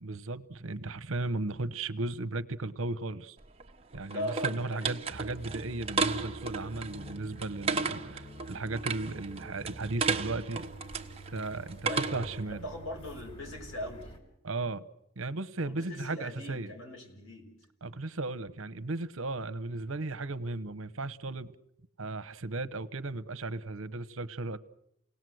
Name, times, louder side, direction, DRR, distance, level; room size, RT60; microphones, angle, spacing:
voice 1, 0.0-3.4 3.9-10.7 11.3-12.6 14.4-14.8 15.2-16.7 17.8-21.5 22.0-24.6, right 2 dB, 75° right, 14 dB, 1.0 m, -36 dB
sound 1, 3.4-12.4, right 4 dB, 30° right, 1.2 m, -34 dB
voice 2, 4.1-5.0 11.8-14.1 15.6-17.5, left 1 dB, 75° left, 3 dB, 6.3 m, -40 dB
sound 2, 5.1-14.2, right 1 dB, 25° left, 4.5 m, -48 dB
29.5 x 19.0 x 7.9 m, 0.79 s
head